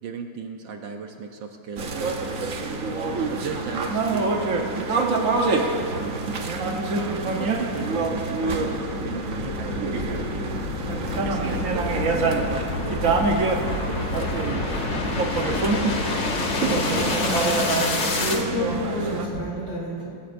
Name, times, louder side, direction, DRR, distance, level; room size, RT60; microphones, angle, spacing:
voice 1, 0.0-2.2 3.3-6.4 6.9-10.6 11.2-13.1 13.7-15.0, right 5 dB, 65° right, 4 dB, 1.3 m, -37 dB
sound 1, 1.8-19.3, right 3 dB, 50° right, 1.0 m, -26 dB
sound 2, 7.0-18.4, left 3 dB, 45° left, 1.1 m, -29 dB
voice 2, 16.7-17.8 18.1-20.1, left 1 dB, 70° left, -6 dB, 4.7 m, -30 dB
19.0 x 16.0 x 2.6 m, 2.4 s
omnidirectional pair, 2.4 m